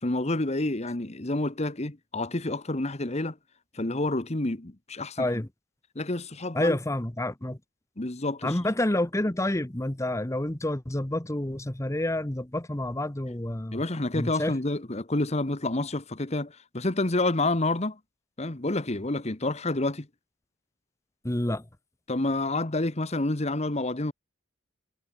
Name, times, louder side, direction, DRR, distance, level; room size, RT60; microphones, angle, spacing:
voice 1, 0.0-3.4 3.7-5.3 5.9-6.8 8.0-8.6 13.7-18.0 18.4-20.1 22.1-24.1, left 2 dB, 35° left, 1.4 m, -28 dB
voice 2, 5.2-5.5 6.5-7.6 8.4-13.8 14.1-14.5 21.2-21.6, left 1 dB, 15° left, 1.0 m, -28 dB
head